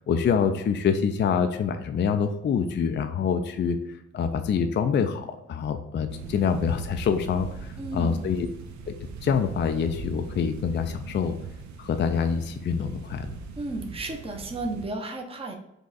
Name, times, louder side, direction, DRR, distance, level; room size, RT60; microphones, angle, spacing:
voice 1, 0.1-3.8 4.1-8.5 8.9-9.0 9.2-11.3 11.8-13.4, left 6 dB, 40° left, 7 dB, 0.4 m, -26 dB
sound 1, 6.1-14.9, right 5 dB, 70° right, 0.8 m, -40 dB
voice 2, 7.8-8.3 13.6-15.6, right 2 dB, 20° right, 2 dB, 0.8 m, -33 dB
5.2 x 2.4 x 4.0 m, 0.86 s
cardioid pair, 90°, 30 cm